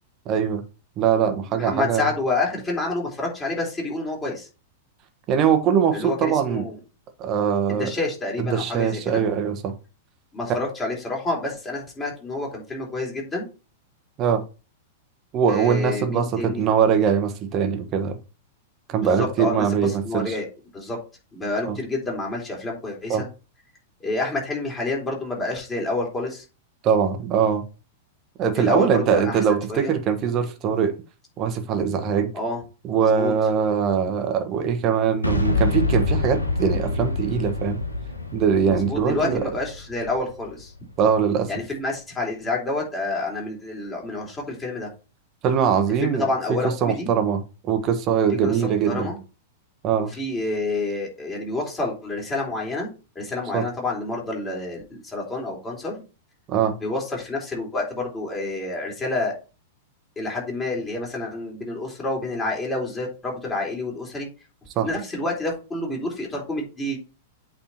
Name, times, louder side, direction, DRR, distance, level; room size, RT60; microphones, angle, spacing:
voice 1, 0.2-0.6 1.0-2.1 5.3-6.7 7.2-7.9 8.4-9.7 14.2-14.4 15.3-18.2 18.9-20.4 21.7-21.8 23.1-23.2 26.8-27.6 28.4-30.9 31.4-32.3 32.8-37.8 38.3-39.4 41.0-41.5 45.4-46.2 46.5-49.1 49.8-50.1 53.5-53.6 56.5-56.7 64.7-64.9, right 7 dB, 30° right, 1.5 m, -22 dB
voice 2, 1.5-4.5 5.9-6.8 7.8-9.2 10.3-13.5 15.5-16.7 18.9-20.5 20.7-21.0 21.3-23.3 24.0-26.4 28.5-29.9 32.3-32.6 32.9-33.3 38.6-40.7 41.5-44.9 46.0-47.1 48.4-49.2 50.1-52.9 53.2-56.0 56.8-59.3 60.2-64.3 64.8-67.0, left 2 dB, 15° left, 3.7 m, -28 dB
Boom, 35.2-41.1, left 2 dB, 85° left, 1.4 m, -26 dB
8.5 x 4.3 x 4.4 m
figure-of-eight pair, 95°, 0 cm